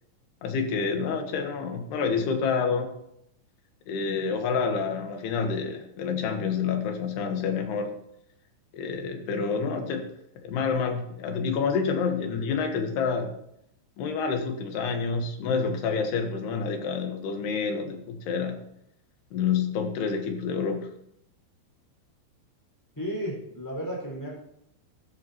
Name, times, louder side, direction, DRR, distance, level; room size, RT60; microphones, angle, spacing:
voice 1, 0.4-2.9 3.9-7.9 8.7-10.1 10.4-13.3 14.0-18.6 19.3-20.9, left 5 dB, 65° left, 4 dB, 3.2 m, -28 dB
voice 2, 22.9-24.4, equal, 5° left, -3 dB, 5.0 m, -33 dB
13.0 x 13.0 x 3.0 m, 0.75 s
omnidirectional pair, 5.5 m